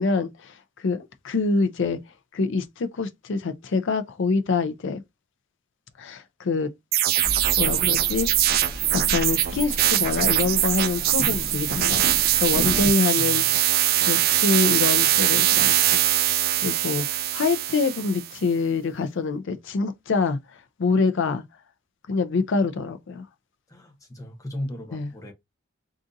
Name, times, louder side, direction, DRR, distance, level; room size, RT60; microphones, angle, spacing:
voice 1, 0.0-2.0 2.3-5.0 6.0-6.7 7.6-8.3 8.9-12.1 12.4-13.4 14.0-16.0 16.6-20.4 20.8-21.4 22.1-23.2 24.9-25.1, left 4 dB, 55° left, 0.4 m, -25 dB
sound 1, 6.9-18.3, right 13 dB, 45° right, 0.3 m, -22 dB
sound 2, 7.2-12.9, equal, 30° right, 1.4 m, -34 dB
voice 2, 13.2-13.5 23.7-25.3, left 1 dB, 15° left, 0.7 m, -36 dB
3.8 x 2.4 x 2.6 m
head